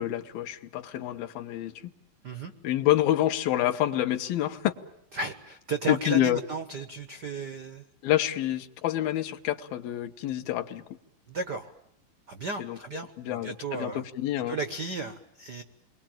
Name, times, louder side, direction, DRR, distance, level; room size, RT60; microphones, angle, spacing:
voice 1, 0.0-1.9 2.6-4.7 5.9-6.4 8.0-10.8 12.6-12.8 13.2-14.6, left 13 dB, 90° left, 8 dB, 3.1 m, -27 dB
voice 2, 5.1-7.8 11.3-11.7 12.3-14.0 14.5-15.6, right 3 dB, 70° right, 9 dB, 0.9 m, -34 dB
29.0 x 22.0 x 9.0 m, 0.78 s
omnidirectional pair, 4.0 m